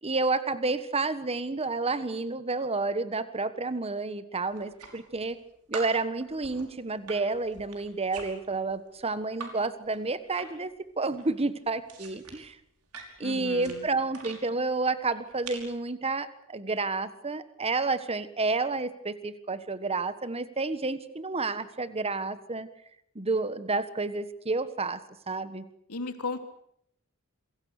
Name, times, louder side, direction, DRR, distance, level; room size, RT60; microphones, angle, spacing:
voice 1, 0.0-5.4 5.7-12.6 13.2-22.7 23.1-25.0 25.3-25.7, right 3 dB, 25° right, 13 dB, 1.4 m, -30 dB
sound 1, 4.5-5.4 5.7-9.5 9.8-10.7 11.0-14.4 15.1-15.8, right 5 dB, 85° right, 5.5 m, -45 dB
voice 2, 13.2-13.9 25.9-26.4, left 3 dB, 90° left, 7 dB, 3.2 m, -35 dB
27.5 x 23.0 x 6.7 m, 0.74 s
head